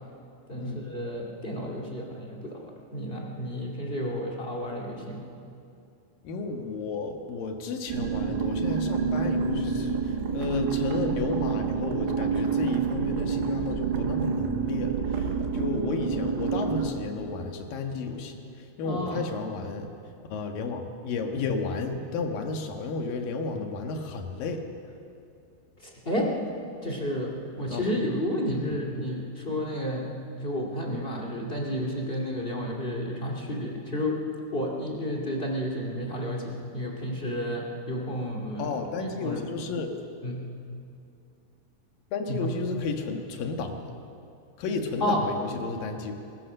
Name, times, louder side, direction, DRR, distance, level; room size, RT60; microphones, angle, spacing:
voice 1, 0.5-5.2 18.8-19.3 25.8-26.3 26.8-30.1 30.4-34.2 34.5-38.7 39.2-39.4 40.2-40.5 42.3-42.5 45.0-45.3, equal, 25° left, -1 dB, 1.3 m, -31 dB
voice 2, 6.2-19.9 20.3-24.7 27.7-27.8 28.5-28.8 38.6-39.9 42.1-43.8 44.6-46.1, left 4 dB, 65° left, 4 dB, 2.9 m, -32 dB
sound 1, 7.9-16.9, right 6 dB, 80° right, 3.5 m, -28 dB
21.0 x 19.0 x 6.6 m, 2.5 s
omnidirectional pair, 4.9 m